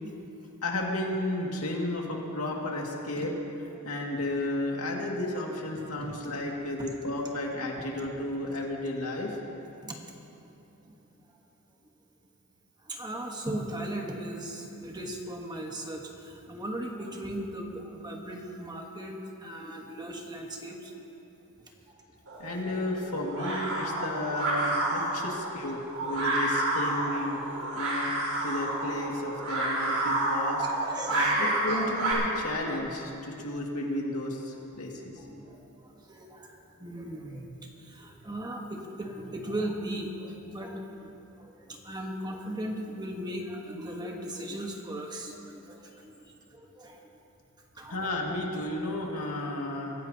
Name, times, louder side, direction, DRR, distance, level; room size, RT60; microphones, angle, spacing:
voice 1, 0.6-3.3 3.8-9.4 22.4-27.4 27.7-28.1 28.4-30.7 31.1-35.1 47.9-49.9, left 1 dB, 80° left, -1 dB, 2.3 m, -33 dB
voice 2, 12.8-21.2 21.6-22.0 27.7-27.9 30.8-31.6 34.6-47.2 47.7-48.1, right 1 dB, 20° right, 1 dB, 1.4 m, -38 dB
sound 1, 22.3-32.1, right 1 dB, 75° right, 4.2 m, -30 dB
24.0 x 15.5 x 2.9 m, 2.8 s
head